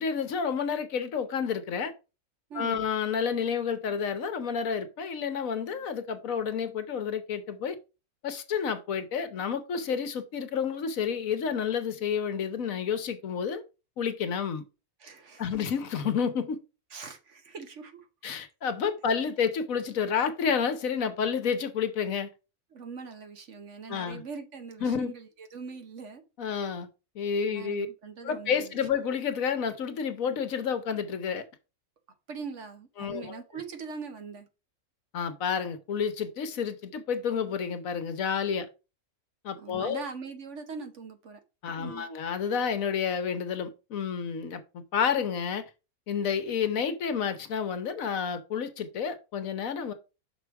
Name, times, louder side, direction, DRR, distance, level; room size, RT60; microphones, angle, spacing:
voice 1, 0.0-1.9 2.5-7.8 8.2-13.6 14.0-14.6 15.4-16.6 18.2-22.3 23.9-24.2 24.8-25.1 26.4-26.9 27.1-27.9 28.2-31.4 33.0-33.4 35.1-38.7 39.4-40.0 41.6-45.6 46.1-49.9, left 7 dB, 70° left, 1.3 m, -30 dB
voice 2, 2.5-2.8 15.0-15.4 16.9-18.1 22.7-26.2 27.5-28.7 32.3-34.5 39.6-41.4 41.7-42.1, right 5 dB, 55° right, 1.2 m, -42 dB
6.0 x 4.9 x 4.6 m
omnidirectional pair, 1.5 m